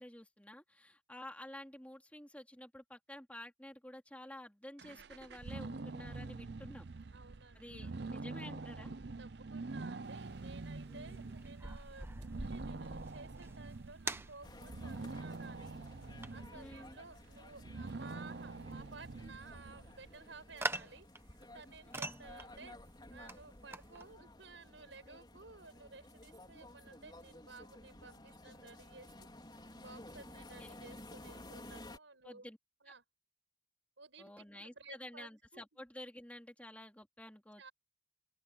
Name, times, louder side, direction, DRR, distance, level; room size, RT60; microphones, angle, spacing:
voice 1, 0.0-6.9 7.5-9.0 10.9-11.3 16.5-17.0 21.9-22.4 30.2-30.3 30.6-30.9 32.2-32.6 34.2-37.7, left 1 dB, 10° left, 4.0 m, -51 dB
sound 1, 4.8-20.2, right 3 dB, 60° right, 0.7 m, -46 dB
voice 2, 7.1-8.1 9.2-22.8 23.1-29.3 29.8-32.5 32.8-33.0 34.0-35.6 37.6-37.7, right 3 dB, 85° right, 6.2 m, -55 dB
sound 2, 10.0-24.1, right 2 dB, 15° right, 1.1 m, -47 dB
sound 3, 14.4-32.0, left 1 dB, 25° left, 4.3 m, -55 dB
open air
head